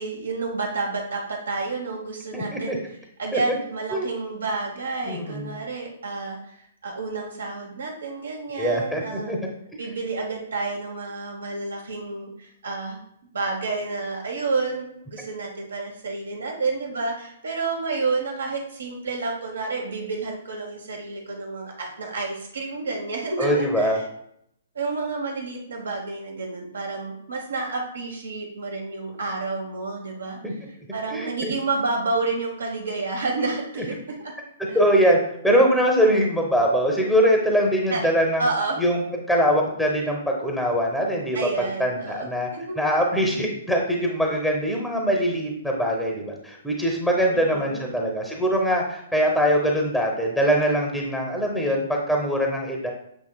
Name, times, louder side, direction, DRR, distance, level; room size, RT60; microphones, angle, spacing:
voice 1, 0.0-2.8 3.2-9.4 9.8-13.0 13.3-24.0 24.7-30.4 30.9-34.3 34.7-34.8 37.9-38.0 38.4-38.8 41.3-42.8 47.3-48.1, right 3 dB, 75° right, 0 dB, 1.2 m, -30 dB
voice 2, 2.3-2.8 3.3-3.4 3.9-4.1 5.0-5.5 8.6-9.4 23.4-24.0 30.4-30.5 31.1-31.5 34.7-35.2 35.4-38.5 38.8-39.0 39.3-41.4 41.8-42.5 42.8-52.9, equal, ahead, 0 dB, 0.8 m, -22 dB
7.7 x 2.8 x 2.3 m, 0.73 s
hypercardioid pair, 125°, 0 cm